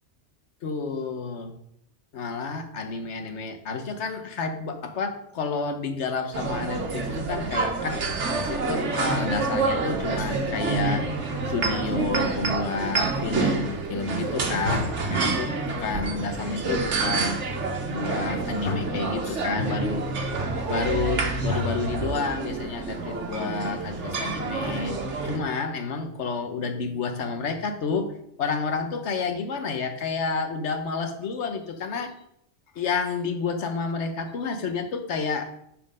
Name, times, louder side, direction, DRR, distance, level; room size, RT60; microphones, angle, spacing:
voice 1, 0.6-1.5 2.1-17.4 17.9-20.1 20.7-25.0 25.2-28.1 28.4-32.1 32.7-35.5, left 4 dB, 75° left, 7 dB, 1.2 m, -30 dB
sound 1, 6.3-25.4, right 3 dB, 85° right, 1.3 m, -28 dB
7.4 x 4.4 x 5.1 m, 0.74 s
omnidirectional pair, 1.2 m